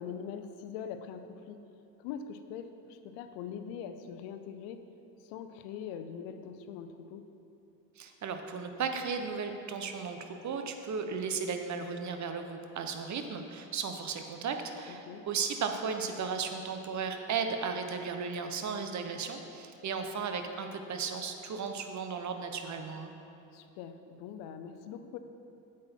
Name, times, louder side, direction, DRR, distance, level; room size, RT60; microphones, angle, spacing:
voice 1, 0.0-1.6 2.0-4.8 5.2-7.3 14.9-15.2 23.5-25.2, left 7 dB, 80° left, 9 dB, 0.7 m, -42 dB
voice 2, 8.0-23.1, right 5 dB, 45° right, 6 dB, 0.9 m, -35 dB
8.7 x 7.4 x 4.4 m, 2.8 s
supercardioid pair, 80°, 41 cm